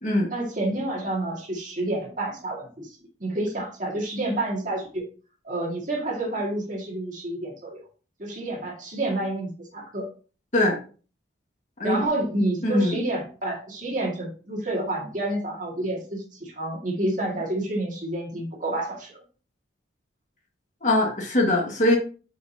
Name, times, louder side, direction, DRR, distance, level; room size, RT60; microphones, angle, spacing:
voice 1, 0.3-5.1 5.4-7.8 8.2-10.1 11.8-19.2, right 1 dB, 45° right, -1 dB, 2.1 m, -29 dB
voice 2, 12.6-13.0 20.8-22.0, left 1 dB, 40° left, 0 dB, 1.8 m, -21 dB
7.6 x 5.3 x 2.8 m, 0.37 s
head